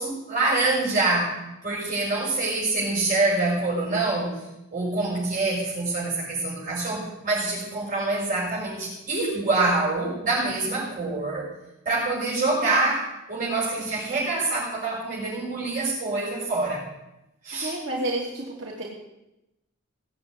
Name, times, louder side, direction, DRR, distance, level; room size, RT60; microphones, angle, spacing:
voice 1, 0.0-1.3 1.6-4.4 4.7-11.5 11.8-16.8 17.4-17.7, right 2 dB, 40° right, -6 dB, 6.3 m, -25 dB
voice 2, 17.5-18.9, right 1 dB, 55° right, -3 dB, 3.0 m, -30 dB
18.5 x 8.0 x 9.8 m, 0.91 s
head